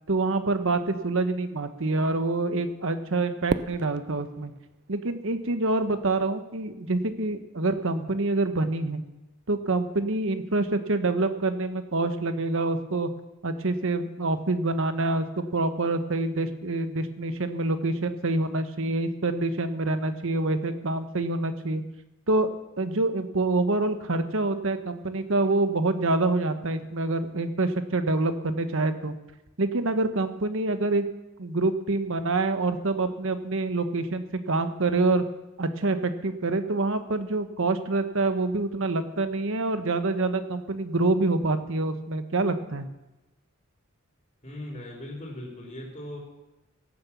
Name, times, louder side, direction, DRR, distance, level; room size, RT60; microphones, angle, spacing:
voice 1, 0.1-4.5 4.9-9.0 9.5-13.1 13.4-21.8 22.3-22.5 22.8-29.1 29.6-31.1 31.4-35.2 35.6-42.9, right 2 dB, 65° right, 9 dB, 1.2 m, -26 dB
Fireworks, 3.5-5.8, right 4 dB, 50° right, 0.5 m, -36 dB
voice 2, 44.4-46.2, left 1 dB, 35° left, -2 dB, 3.4 m, -39 dB
17.0 x 7.9 x 7.1 m, 1.0 s
head